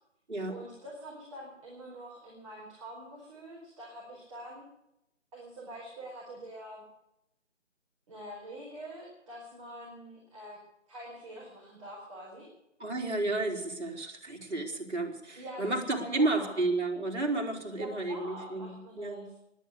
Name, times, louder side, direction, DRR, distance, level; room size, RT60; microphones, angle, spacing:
voice 1, 0.5-4.6 5.3-6.8 8.1-10.6 10.9-12.5 15.3-16.6 17.7-19.3, right 1 dB, 25° right, -5 dB, 4.6 m, -45 dB
voice 2, 12.8-19.2, right 2 dB, 60° right, 1 dB, 4.2 m, -32 dB
22.5 x 9.4 x 6.8 m, 0.84 s
figure-of-eight pair, 160°, 38 cm